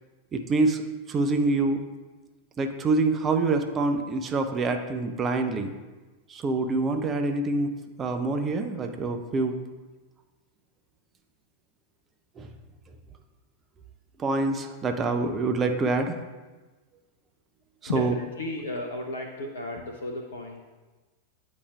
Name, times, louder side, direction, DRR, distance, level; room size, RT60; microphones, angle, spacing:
voice 1, 0.3-0.8 1.1-1.8 2.6-5.7 6.3-7.7 8.0-9.5 12.4-12.5 14.2-16.1 17.8-18.1, right 3 dB, 25° right, 6 dB, 0.5 m, -26 dB
voice 2, 17.9-20.6, left 2 dB, 65° left, 2 dB, 0.5 m, -34 dB
8.4 x 4.9 x 2.3 m, 1.2 s
figure-of-eight pair, 90°, 0 cm